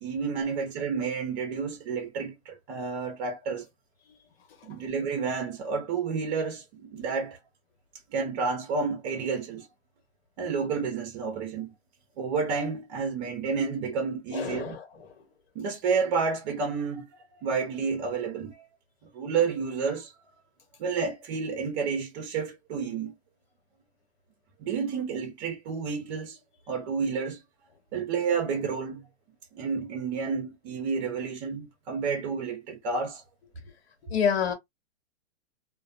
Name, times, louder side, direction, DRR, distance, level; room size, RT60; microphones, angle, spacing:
voice 1, 0.0-3.7 4.6-7.4 8.1-9.7 10.4-11.7 12.2-14.8 15.5-18.7 19.1-20.1 20.8-23.1 24.6-26.4 26.7-27.4 27.9-29.0 29.5-33.2, right 5 dB, 45° right, 0.7 m, -30 dB
voice 2, 14.3-15.1 34.1-34.5, left 7 dB, 65° left, 1.2 m, -28 dB
2.3 x 2.2 x 2.5 m
hypercardioid pair, 125°, 33 cm